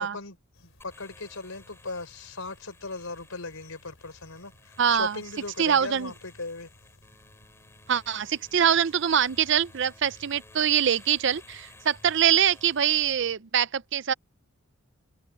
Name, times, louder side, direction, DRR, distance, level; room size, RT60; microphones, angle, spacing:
voice 1, 0.0-6.7, left 3 dB, 85° left, 4.3 m, -38 dB
sound 1, 0.5-13.4, left 1 dB, 65° left, 4.5 m, -58 dB
sound 2, 0.8-13.1, left 2 dB, 10° left, 6.4 m, -55 dB
voice 2, 4.8-5.2 5.6-6.1 7.9-14.1, right 8 dB, 55° right, 0.5 m, -24 dB
open air
head